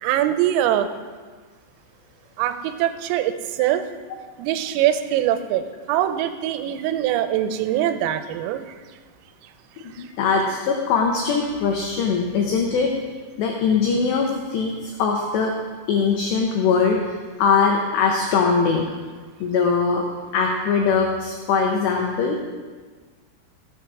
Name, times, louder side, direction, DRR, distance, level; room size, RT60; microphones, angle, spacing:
voice 1, 0.0-0.9 2.4-3.8 4.4-8.8 9.9-10.1, right 11 dB, 85° right, 10 dB, 3.3 m, -23 dB
voice 2, 9.8-12.9 13.4-15.5 15.9-18.9 19.4-20.0 20.3-22.4, left 5 dB, 75° left, 1 dB, 2.7 m, -21 dB
16.5 x 7.8 x 4.8 m, 1.4 s
omnidirectional pair, 5.9 m